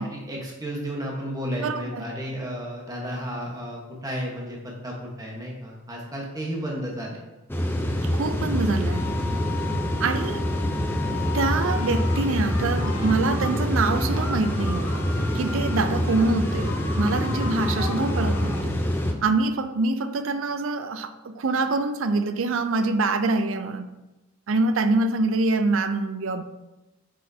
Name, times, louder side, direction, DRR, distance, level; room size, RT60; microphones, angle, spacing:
voice 1, 0.0-7.2, equal, 15° right, 1.2 m, -33 dB
voice 2, 1.6-2.0 8.1-9.1 10.0-10.5 11.1-15.0 15.3-18.8 19.2-23.9 24.5-26.4, right 3 dB, 60° right, 0.5 m, -25 dB
sound 1, 7.5-19.1, equal, 10° left, 0.6 m, -26 dB
Wind instrument woodwind instrument, 7.9-12.3, left 11 dB, 55° left, 1.1 m, -38 dB
sound 2, 11.3-18.7, left 3 dB, 75° left, 0.9 m, -38 dB
8.4 x 6.3 x 2.8 m
head